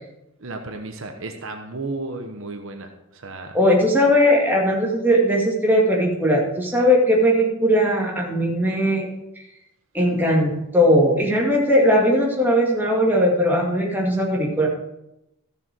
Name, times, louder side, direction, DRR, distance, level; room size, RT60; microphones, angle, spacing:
voice 1, 0.4-3.6, right 2 dB, 60° right, 4 dB, 1.1 m, -33 dB
voice 2, 3.5-9.1 9.9-14.7, equal, 10° right, -2 dB, 2.0 m, -19 dB
14.5 x 7.0 x 4.6 m, 0.84 s
head